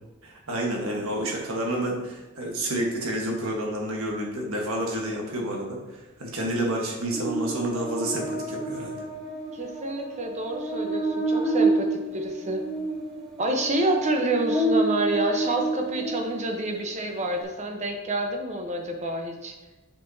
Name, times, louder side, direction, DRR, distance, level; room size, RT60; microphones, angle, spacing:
voice 1, 0.2-9.0, right 1 dB, 65° right, 0 dB, 1.5 m, -29 dB
Buzz, 7.1-16.6, right 2 dB, 5° left, 1.7 m, -29 dB
voice 2, 9.5-12.6 13.4-19.5, right 2 dB, 30° right, 3 dB, 0.9 m, -28 dB
7.1 x 5.8 x 2.8 m, 1.1 s
head